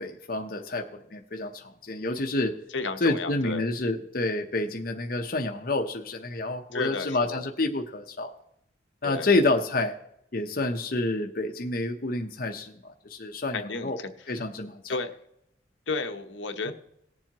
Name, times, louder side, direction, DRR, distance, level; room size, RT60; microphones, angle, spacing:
voice 1, 0.0-2.6 3.0-8.3 9.0-10.0 10.3-14.0 14.3-15.0 16.6-16.7, left 2 dB, 50° left, 3 dB, 0.8 m, -28 dB
voice 2, 2.7-3.6 6.7-7.4 9.0-9.3 13.5-14.1 14.9-15.2 15.9-16.7, left 3 dB, 75° left, 6 dB, 1.0 m, -32 dB
19.0 x 7.3 x 3.0 m, 0.75 s
head